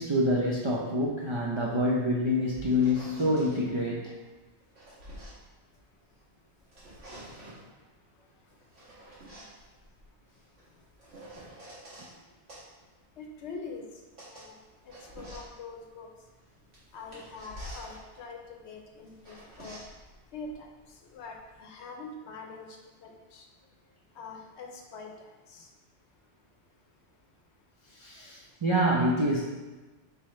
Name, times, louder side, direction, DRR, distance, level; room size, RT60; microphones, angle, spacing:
voice 1, 0.0-4.0 27.9-29.4, equal, 50° right, -5 dB, 0.3 m, -26 dB
sound 1, 2.2-3.6 4.4-6.2 6.6-7.7 8.5-12.1 12.5-21.6, right 1 dB, 85° right, 1.7 m, -49 dB
voice 2, 13.2-13.8 14.3-14.6 14.8-16.1 16.9-19.8 20.3-23.5 24.2-25.7, left 4 dB, 70° left, 2 dB, 0.9 m, -44 dB
3.6 x 3.4 x 4.2 m, 1.2 s
omnidirectional pair, 1.2 m